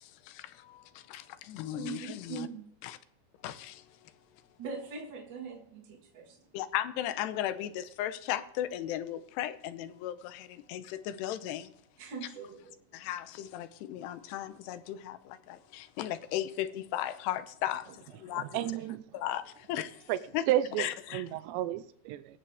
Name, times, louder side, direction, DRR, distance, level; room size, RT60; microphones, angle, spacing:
voice 1, 0.0-2.5 2.8-3.0 3.4-3.8 6.5-11.7 12.9-18.6 19.1-20.0 20.3-20.5 20.8-21.2, left 12 dB, 80° left, 2.8 m, -36 dB
voice 2, 1.7-2.6 4.6-6.4 12.0-12.8, right 5 dB, 60° right, 1.1 m, -42 dB
voice 3, 18.3-19.0 20.1-20.2 20.5-20.9 21.1-22.4, right 13 dB, 90° right, 2.9 m, -31 dB
21.0 x 7.6 x 3.5 m
omnidirectional pair, 5.0 m